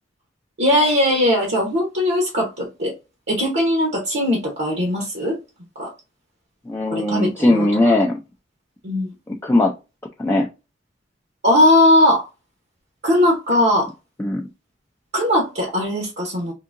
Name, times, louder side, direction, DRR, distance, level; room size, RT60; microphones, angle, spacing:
voice 1, 0.6-2.9 3.3-5.4 5.7-5.9 6.9-7.7 8.8-9.1 11.4-12.3 13.0-13.9 15.1-16.5, left 1 dB, 65° right, 0.9 m, -19 dB
voice 2, 6.7-8.2 9.3-9.7 10.2-10.5 14.2-14.4, left 2 dB, 15° left, 0.3 m, -19 dB
3.7 x 2.7 x 2.5 m
head